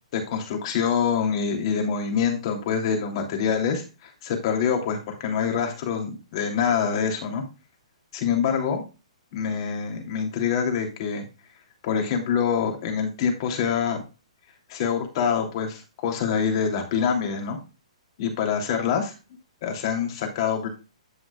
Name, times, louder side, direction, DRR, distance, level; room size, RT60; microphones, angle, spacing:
voice 1, 0.1-7.4 8.1-8.8 9.3-11.3 11.8-14.0 14.7-17.6 18.2-19.1 19.6-20.7, left 7 dB, 45° left, 2 dB, 2.9 m, -25 dB
11.0 x 6.2 x 2.4 m, 0.30 s
hypercardioid pair, 135°, 4 cm